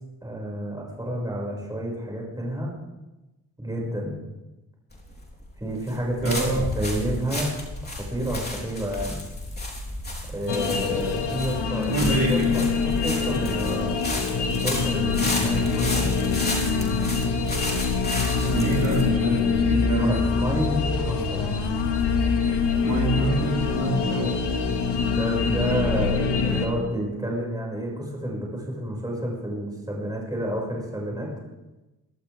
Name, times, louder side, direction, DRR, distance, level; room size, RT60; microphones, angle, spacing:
voice 1, 0.2-2.7 3.6-4.2 5.6-7.5 7.9-9.2 10.3-14.0 14.4-16.1 19.9-21.5 24.0-24.2 25.1-31.3, equal, 10° right, -3 dB, 6.1 m, -30 dB
sound 1, 4.9-20.4, left 1 dB, 25° left, 3.7 m, -33 dB
voice 2, 6.2-6.7 11.9-12.5 18.4-20.2 22.8-24.3, right 3 dB, 50° right, -4 dB, 4.4 m, -26 dB
sound 2, 10.5-26.7, left 5 dB, 80° left, 1.9 m, -25 dB
23.0 x 11.5 x 3.6 m, 1.0 s
cardioid pair, 65°, 41 cm